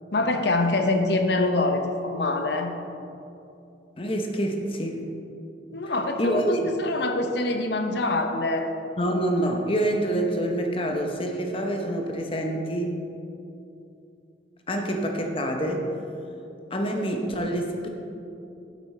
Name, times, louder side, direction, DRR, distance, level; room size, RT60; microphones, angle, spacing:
voice 1, 0.1-2.7 5.7-8.7, left 2 dB, 65° left, 6 dB, 0.8 m, -25 dB
voice 2, 4.0-5.1 6.2-6.7 9.0-13.0 14.7-15.9 16.7-17.9, right 1 dB, 30° left, 2 dB, 0.9 m, -26 dB
9.4 x 8.5 x 4.3 m, 2.8 s
head